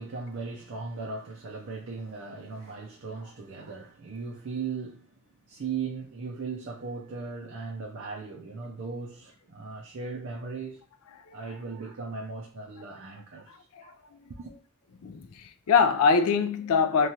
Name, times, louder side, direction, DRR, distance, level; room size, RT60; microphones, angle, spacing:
voice 1, 0.0-5.2 5.5-10.8 11.3-14.0 14.3-14.5, right 4 dB, 55° right, 0.5 m, -38 dB
voice 2, 15.0-17.1, left 5 dB, 70° left, 0.4 m, -23 dB
3.0 x 2.3 x 2.7 m
head